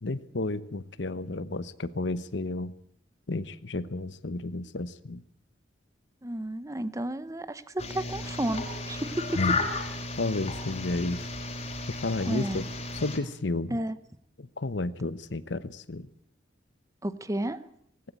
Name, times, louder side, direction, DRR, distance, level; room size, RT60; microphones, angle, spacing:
voice 1, 0.0-2.7 3.3-5.2 9.4-9.6 10.1-11.3 11.9-12.6 12.9-13.8 14.4-16.1, left 2 dB, 80° left, 15 dB, 1.0 m, -32 dB
voice 2, 6.2-9.4 12.3-12.6 13.7-14.0 17.0-17.6, right 1 dB, 20° right, 14 dB, 0.9 m, -32 dB
sound 1, 7.8-13.2, left 3 dB, 40° left, 3.9 m, -34 dB
18.5 x 16.5 x 8.9 m, 0.70 s
head